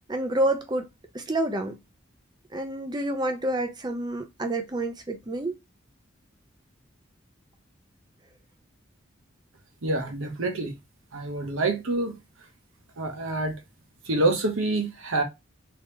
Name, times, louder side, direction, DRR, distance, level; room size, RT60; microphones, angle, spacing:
voice 1, 0.1-0.9 1.1-1.8 2.5-5.5, right 1 dB, 20° right, 0.6 m, -28 dB
voice 2, 9.8-10.7 11.1-12.1 13.0-13.5 14.1-15.2, right 2 dB, 85° right, 0.9 m, -26 dB
3.5 x 2.9 x 2.9 m
head